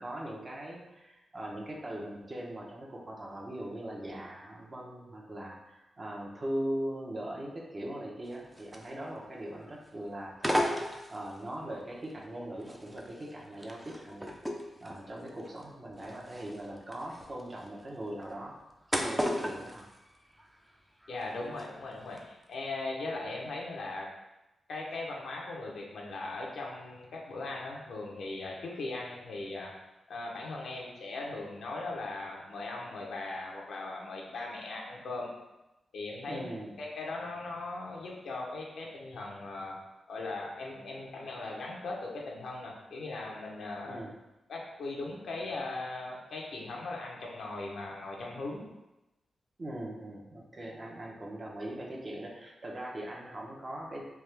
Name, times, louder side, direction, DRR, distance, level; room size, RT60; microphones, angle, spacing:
voice 1, 0.0-10.5 11.1-14.3 14.8-18.5 18.9-19.9 36.3-36.8 43.8-44.1 49.6-54.1, right 1 dB, 40° right, -2 dB, 0.8 m, -40 dB
sound 1, 8.3-9.3 9.6-9.9 10.3-11.5 12.1-20.8 21.0-21.7 22.0-22.2, equal, 5° right, 0.5 m, -36 dB
voice 2, 21.1-24.1 24.7-29.7 30.1-35.3 35.9-39.8 40.1-44.0 44.5-48.7, left 2 dB, 75° left, -2 dB, 0.7 m, -39 dB
3.4 x 2.4 x 3.3 m, 0.98 s
cardioid pair, 50°, 0 cm